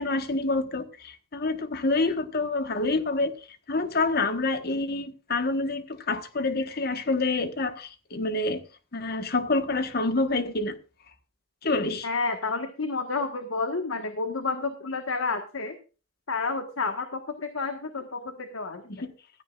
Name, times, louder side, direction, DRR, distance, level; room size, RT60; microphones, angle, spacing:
voice 1, 0.0-3.3 3.7-8.6 8.9-10.8 11.6-12.1 18.9-19.1, left 3 dB, 50° left, 1.4 m, -27 dB
voice 2, 12.0-15.8 16.3-18.8, left 4 dB, 85° left, 1.6 m, -30 dB
16.0 x 13.5 x 2.5 m
head